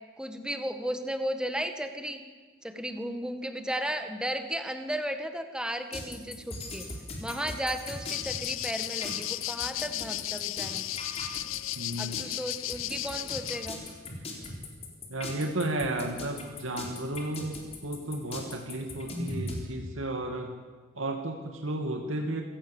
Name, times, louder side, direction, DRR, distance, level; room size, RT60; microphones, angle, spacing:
voice 1, 0.2-2.2 2.6-6.9 7.2-10.8 12.0-13.8, equal, 5° right, 7 dB, 1.6 m, -34 dB
sound 1, 5.9-19.6, left 2 dB, 30° left, 3.8 m, -39 dB
sound 2, 8.0-13.7, left 15 dB, 85° left, 0.6 m, -35 dB
voice 2, 11.8-12.2 15.1-17.6 17.8-20.5 21.0-22.4, right 1 dB, 85° right, 3 dB, 2.3 m, -33 dB
26.5 x 17.0 x 7.3 m, 1.4 s
head